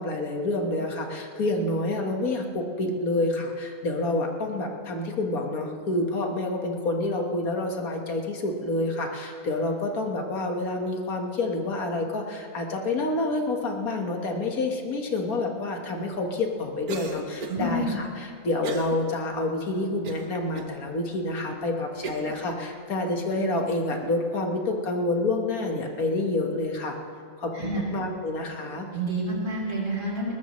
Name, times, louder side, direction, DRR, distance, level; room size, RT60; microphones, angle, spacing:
voice 1, 0.0-26.9 27.4-28.9, left 2 dB, 80° left, 2 dB, 2.0 m, -28 dB
Cough, 16.9-17.7 18.6-19.0 19.4-19.5 20.0-20.7 21.3-21.4 22.0-22.4, right 4 dB, 85° right, 1.7 m, -36 dB
voice 2, 17.5-17.9 27.5-27.8 28.9-30.3, right 1 dB, 60° right, -4 dB, 4.2 m, -28 dB
21.0 x 19.0 x 3.2 m, 2.3 s
omnidirectional pair, 1.5 m